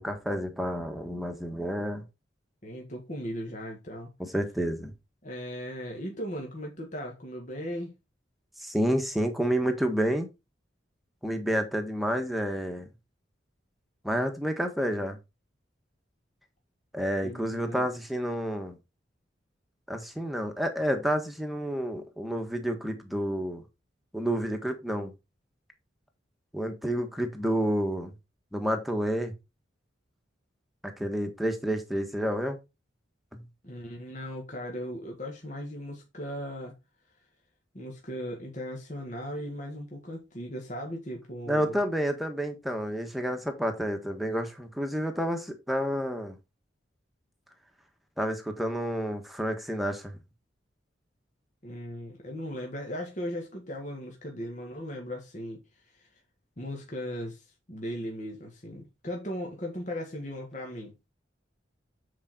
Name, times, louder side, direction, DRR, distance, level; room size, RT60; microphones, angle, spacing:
voice 1, 0.0-2.0 4.2-4.9 8.6-10.3 11.2-12.9 14.0-15.2 16.9-18.8 19.9-23.6 24.1-25.1 26.5-28.1 28.5-29.3 30.8-32.6 33.3-33.4 41.5-46.4 48.2-50.1, equal, ahead, 1.5 m, -29 dB
voice 2, 2.6-4.1 5.2-8.0 17.2-17.9 33.6-36.7 37.7-41.8 51.6-55.6 55.9-56.0 56.6-61.0, equal, 40° left, 1.9 m, -37 dB
8.7 x 4.9 x 4.4 m
head